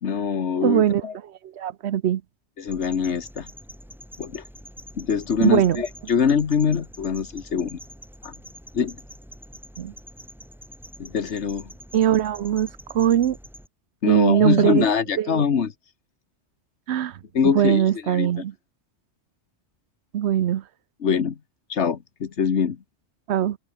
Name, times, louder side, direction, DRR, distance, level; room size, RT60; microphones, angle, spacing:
voice 1, 0.0-1.1 2.6-3.5 4.2-4.4 4.9-7.8 8.2-8.3 8.7-9.0 11.0-11.7 14.0-15.7 17.3-18.4 21.0-21.4 21.7-22.8, left 6 dB, 70° left, 1.5 m, -24 dB
voice 2, 0.6-1.0 1.6-2.2 5.4-5.8 9.8-9.9 11.9-13.4 14.1-14.9 15.2-15.4 16.9-17.2 17.5-18.5 20.1-20.6 23.3-23.6, right 10 dB, 70° right, 1.0 m, -21 dB
sound 1, 2.7-13.7, equal, ahead, 6.1 m, -45 dB
omnidirectional pair, 1.2 m